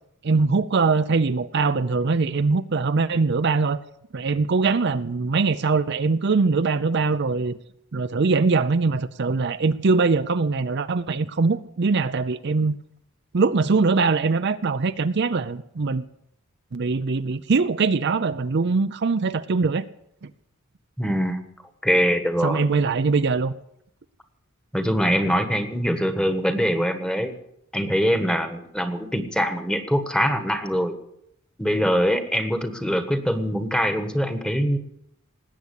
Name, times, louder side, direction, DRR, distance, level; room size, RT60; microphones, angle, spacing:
voice 1, 0.2-3.8 4.1-7.6 7.9-12.8 13.3-16.0 16.7-19.9 22.4-23.5, right 4 dB, 55° right, 11 dB, 0.6 m, -22 dB
voice 2, 21.0-21.4 21.8-22.7 24.7-27.3 27.7-31.0 31.6-34.8, equal, 5° left, 8 dB, 1.3 m, -23 dB
19.5 x 8.5 x 8.4 m, 0.76 s
head